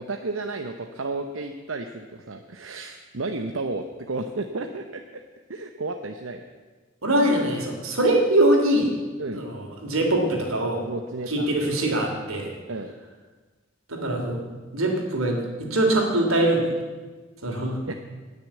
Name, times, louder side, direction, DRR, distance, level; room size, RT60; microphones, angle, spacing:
voice 1, 0.0-5.2 5.5-6.4 9.2-9.4 10.9-11.5 12.7-12.9 17.9-18.0, right 3 dB, 70° right, 5 dB, 0.9 m, -32 dB
voice 2, 7.0-8.9 9.3-10.8 11.3-12.5 13.9-14.4 14.7-16.7 17.4-17.8, right 1 dB, 90° right, 2 dB, 3.2 m, -23 dB
19.5 x 6.7 x 8.5 m, 1.3 s
head